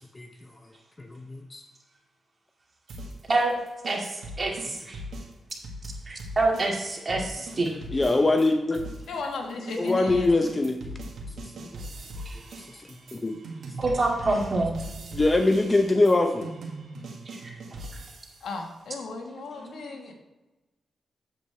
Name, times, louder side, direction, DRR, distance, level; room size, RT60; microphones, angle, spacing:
voice 1, 1.0-1.6 7.9-8.8 9.8-10.8 11.6-11.7 12.8-13.4 15.1-16.5, left 2 dB, 25° left, 6 dB, 0.6 m, -23 dB
sound 1, 2.9-8.5 8.7-18.5, right 1 dB, 75° right, 1.7 m, -40 dB
voice 2, 3.9-5.0 6.1-7.7 12.3-12.4 13.8-14.8 17.4-17.5, right 2 dB, 35° right, -1 dB, 2.3 m, -26 dB
voice 3, 9.1-10.4 18.4-20.1, left 3 dB, 80° left, 2 dB, 1.4 m, -35 dB
8.2 x 8.1 x 3.3 m, 1.1 s
cardioid pair, 80°, 0 cm